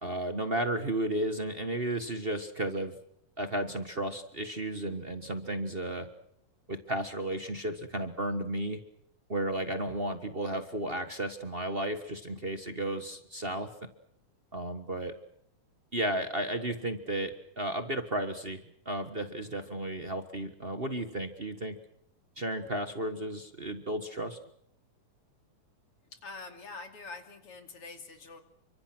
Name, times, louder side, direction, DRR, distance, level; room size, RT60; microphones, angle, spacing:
voice 1, 0.0-2.9 3.4-6.1 6.7-8.8 9.3-13.7 14.5-15.1 15.9-21.8 22.4-24.4, right 1 dB, 40° right, 8 dB, 0.8 m, -33 dB
voice 2, 26.1-28.4, left 3 dB, 50° left, 6 dB, 3.5 m, -45 dB
29.5 x 25.5 x 6.2 m, 0.71 s
omnidirectional pair, 3.5 m